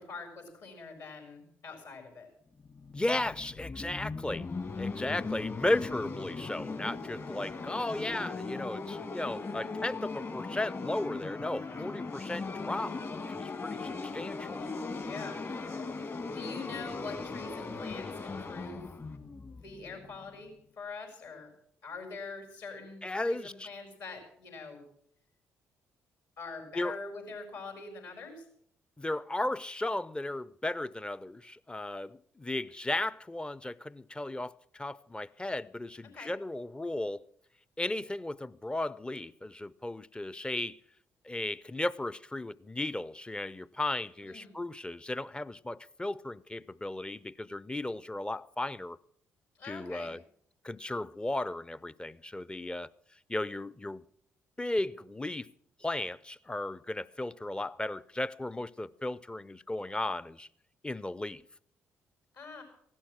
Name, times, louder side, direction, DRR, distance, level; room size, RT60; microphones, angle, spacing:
voice 1, 0.0-2.3 9.4-9.8 11.8-11.9 15.0-15.4 16.3-18.9 19.5-21.5 21.8-24.8 26.4-28.4 36.0-36.3 44.2-44.5 49.6-50.1 62.3-62.6, left 4 dB, 60° left, 4.4 m, -44 dB
sound 1, 2.6-20.4, left 4 dB, 35° left, 1.7 m, -39 dB
voice 2, 2.9-4.5 4.8-14.6 23.0-23.7 26.7-27.0 29.0-37.2 37.8-40.8 41.2-49.0 49.6-50.2 50.6-52.9 53.3-54.0 54.6-55.5 55.8-60.5 60.8-61.4, left 2 dB, 15° left, 0.5 m, -35 dB
16.0 x 11.5 x 6.2 m
figure-of-eight pair, 45°, 7 cm